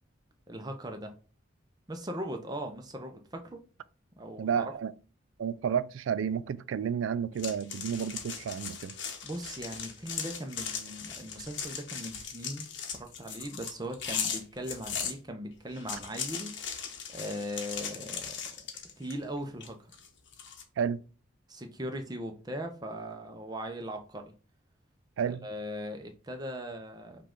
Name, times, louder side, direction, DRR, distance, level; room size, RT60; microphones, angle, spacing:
voice 1, 0.5-1.1 1.9-3.6 4.2-4.7 9.2-12.7 12.9-16.6 17.1-18.4 19.0-19.9 21.5-24.2 25.2-27.2, equal, 20° right, 0.6 m, -39 dB
voice 2, 4.4-4.9 5.4-8.9 20.8-21.0 25.2-25.4, right 7 dB, 80° right, 0.3 m, -31 dB
sound 1, 7.4-15.1 15.7-19.2 19.6-20.6, left 7 dB, 65° left, 0.8 m, -38 dB
5.5 x 2.4 x 3.6 m
head